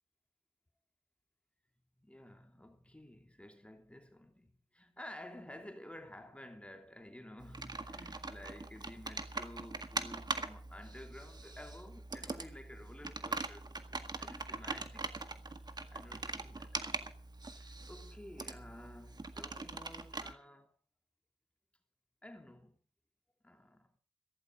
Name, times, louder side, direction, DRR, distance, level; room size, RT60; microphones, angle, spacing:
voice 1, 2.0-15.2 15.9-17.2 17.5-20.7 22.2-22.8 23.4-23.9, left 1 dB, 10° left, 2.9 m, -52 dB
Computer keyboard, 7.4-20.3, right 3 dB, 45° right, 1.8 m, -42 dB
16.0 x 14.5 x 5.1 m
cardioid pair, 55°, 10 cm